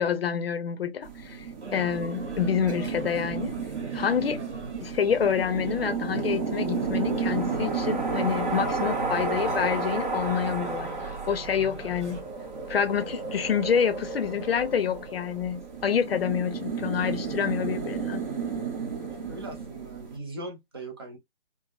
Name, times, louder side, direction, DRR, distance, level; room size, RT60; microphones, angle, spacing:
voice 1, 0.0-1.5 1.7-3.6 3.9-4.4 4.8-12.3 12.7-18.2, left 7 dB, 60° left, 0.6 m, -27 dB
sound 1, 1.0-20.2, right 4 dB, 40° right, 0.9 m, -32 dB
sound 2, 1.6-12.2, right 4 dB, 75° right, 1.0 m, -43 dB
voice 2, 19.3-21.2, right 2 dB, 20° right, 0.4 m, -40 dB
3.3 x 2.0 x 2.3 m
figure-of-eight pair, 145°, 34 cm